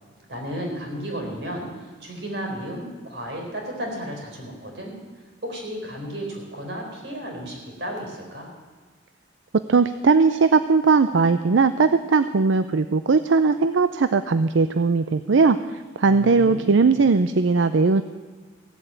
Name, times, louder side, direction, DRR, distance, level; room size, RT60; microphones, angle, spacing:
voice 1, 0.3-4.9 5.4-8.5 16.1-17.0, equal, 60° right, 1 dB, 4.2 m, -33 dB
voice 2, 9.7-15.6 16.0-18.0, right 4 dB, 80° right, 12 dB, 0.5 m, -19 dB
16.0 x 7.9 x 8.9 m, 1.4 s
head